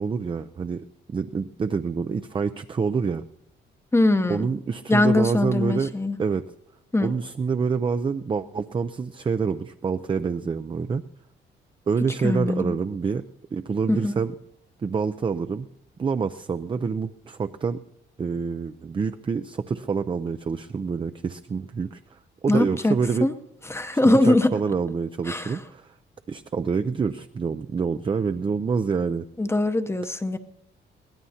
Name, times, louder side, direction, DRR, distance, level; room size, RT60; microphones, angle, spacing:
voice 1, 0.0-3.2 4.3-5.9 6.2-6.4 7.0-11.0 11.9-13.2 13.5-14.3 14.8-15.7 16.0-17.8 18.2-22.0 22.4-23.3 24.0-25.9 26.3-29.3, right 5 dB, 25° right, 9 dB, 0.4 m, -27 dB
voice 2, 3.9-4.5 4.9-6.2 6.9-7.1 12.2-12.8 13.9-14.1 22.5-23.0 23.2-23.3 23.7-24.5 25.3-25.6 29.4-30.4, left 2 dB, 15° left, 8 dB, 0.8 m, -21 dB
22.0 x 17.0 x 2.8 m, 0.82 s
cardioid pair, 90°, 20 cm